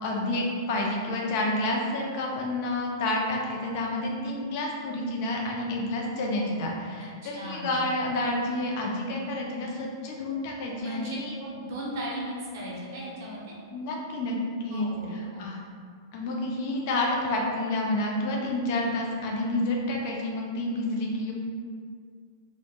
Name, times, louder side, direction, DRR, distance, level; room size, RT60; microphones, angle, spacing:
voice 1, 0.0-11.3 13.7-14.9 15.4-15.6 16.1-21.3, left 2 dB, 30° left, -1 dB, 0.3 m, -29 dB
voice 2, 7.3-7.9 10.8-13.6 14.7-15.5, equal, 45° right, -4 dB, 0.5 m, -36 dB
2.1 x 2.0 x 2.9 m, 2.1 s
supercardioid pair, 180°, 2 cm